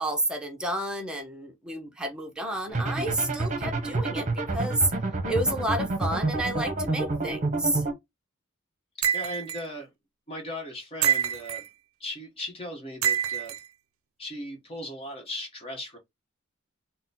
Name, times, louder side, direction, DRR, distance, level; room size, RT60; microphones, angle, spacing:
voice 1, 0.0-4.3 4.5-4.9 5.3-7.8, right 1 dB, 5° right, 0.8 m, -30 dB
sound 1, 2.7-7.9, right 2 dB, 35° right, 0.9 m, -28 dB
sound 2, 9.0-9.6 11.0-11.7 13.0-13.6, right 9 dB, 70° right, 0.5 m, -26 dB
voice 2, 9.1-9.9 10.3-11.7 12.0-13.5 14.2-16.0, left 1 dB, 30° left, 1.2 m, -37 dB
4.0 x 2.2 x 4.1 m
head